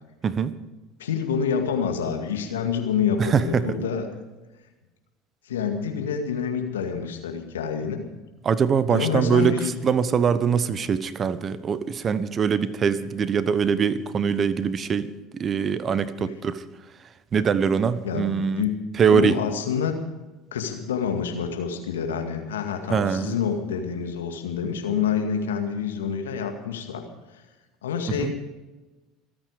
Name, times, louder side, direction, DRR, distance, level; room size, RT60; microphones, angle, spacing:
voice 1, 1.0-4.1 5.5-8.0 8.9-9.8 16.2-16.3 18.0-19.9 20.5-27.1 27.8-28.3, left 7 dB, 80° left, 4 dB, 2.1 m, -27 dB
voice 2, 3.2-3.7 8.4-9.6 9.8-15.1 15.3-16.6 17.3-18.7 19.0-19.4 22.9-23.3 28.2-28.3, right 6 dB, 35° right, 15 dB, 1.0 m, -23 dB
26.5 x 8.9 x 5.0 m, 1.1 s
hypercardioid pair, 70°, 0 cm